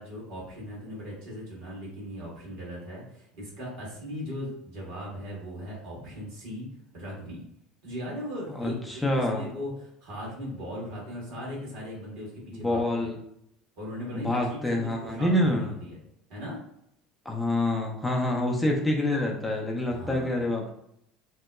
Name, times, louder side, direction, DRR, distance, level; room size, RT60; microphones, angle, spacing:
voice 1, 0.0-6.7 6.9-7.4 7.8-13.1 13.8-16.0 16.3-16.6 19.9-20.4, equal, 65° right, -4 dB, 1.4 m, -38 dB
voice 2, 8.5-9.4 12.5-13.2 14.1-15.7 17.2-20.7, left 1 dB, 10° left, -1 dB, 0.5 m, -27 dB
2.8 x 2.1 x 2.3 m, 0.75 s
hypercardioid pair, 70°, 0 cm